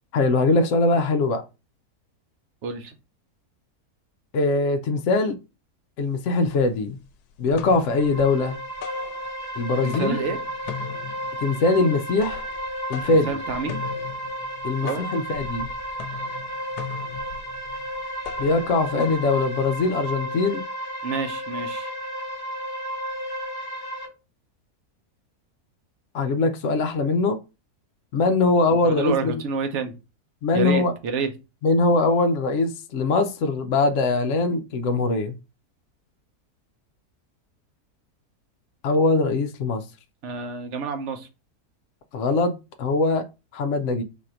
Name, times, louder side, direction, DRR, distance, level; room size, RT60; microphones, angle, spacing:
voice 1, 0.1-1.4 4.3-5.4 6.0-7.0 7.4-8.6 9.6-10.2 11.4-12.5 12.9-13.3 14.6-15.7 18.4-20.6 26.1-27.4 28.1-29.4 30.4-30.9 31.6-35.3 38.8-39.8 42.1-43.2 43.5-44.0, left 3 dB, 65° left, 0.8 m, -22 dB
voice 2, 2.6-3.0 9.8-10.4 13.1-13.8 14.8-15.1 19.0-19.1 19.8-19.9 21.0-21.9 28.7-29.9 30.5-31.3 40.2-41.3, right 5 dB, 55° right, 0.9 m, -29 dB
sound 1, 6.0-6.1 6.4-7.1 7.4-9.6 9.8-20.0, left 8 dB, 85° left, 1.1 m, -39 dB
sound 2, 7.7-24.1, equal, 20° left, 0.7 m, -33 dB
4.1 x 2.5 x 4.3 m
omnidirectional pair, 1.7 m